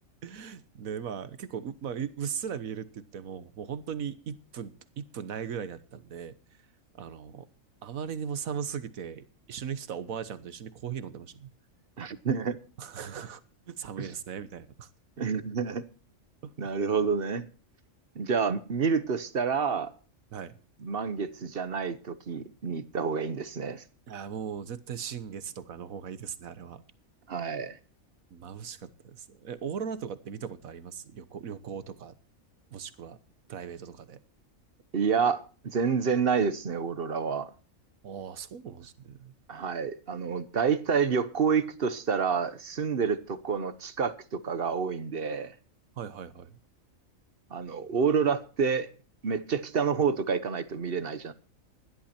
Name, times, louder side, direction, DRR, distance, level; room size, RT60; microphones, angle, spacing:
voice 1, 0.2-6.3 6.9-7.5 7.8-11.5 12.8-13.4 13.7-14.9 16.4-16.7 20.3-20.5 24.1-26.8 28.3-32.1 32.7-33.2 33.5-34.2 38.0-39.3 46.0-46.6, right 7 dB, 80° right, 1.5 m, -38 dB
voice 2, 12.0-12.6 14.0-14.1 15.2-15.8 16.6-17.5 18.1-19.9 20.8-23.8 27.3-27.8 34.9-37.5 39.5-45.5 47.5-48.9 49.2-51.3, right 6 dB, 45° right, 1.1 m, -28 dB
16.5 x 12.0 x 4.3 m
omnidirectional pair, 1.4 m